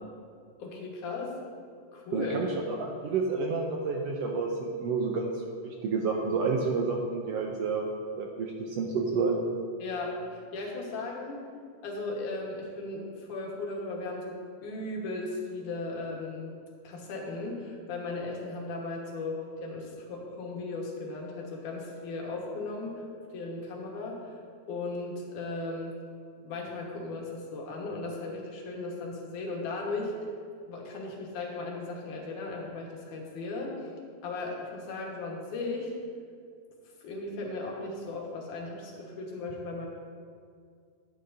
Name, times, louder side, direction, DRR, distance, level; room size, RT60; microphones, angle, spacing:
voice 1, 0.6-1.4 1.9-2.4 9.8-11.4 11.8-14.4 14.6-16.5 16.8-23.0 23.3-24.3 24.7-26.0 26.4-30.1 30.7-33.9 34.2-35.9 37.0-39.8, left 3 dB, 90° left, -1 dB, 2.9 m, -36 dB
voice 2, 2.1-7.9 8.2-9.5, right 4 dB, 80° right, 0 dB, 1.5 m, -30 dB
10.5 x 10.0 x 2.7 m, 2.2 s
omnidirectional pair, 3.4 m